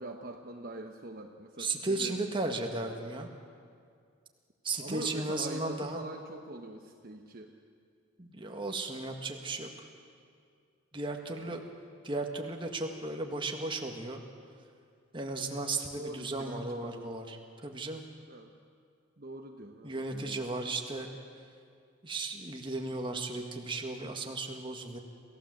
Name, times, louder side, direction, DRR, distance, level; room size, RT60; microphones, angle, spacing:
voice 1, 0.0-2.1 4.8-7.5 11.4-11.6 16.0-17.2 18.3-18.5 19.2-20.5, right 2 dB, 45° right, 3 dB, 1.1 m, -43 dB
voice 2, 1.6-3.3 4.6-6.0 8.2-9.9 10.9-11.6 12.0-14.2 15.1-17.4 17.6-18.0 19.8-21.1 22.0-25.0, right 2 dB, 25° right, 3 dB, 1.8 m, -35 dB
28.0 x 16.0 x 7.8 m, 2.2 s
head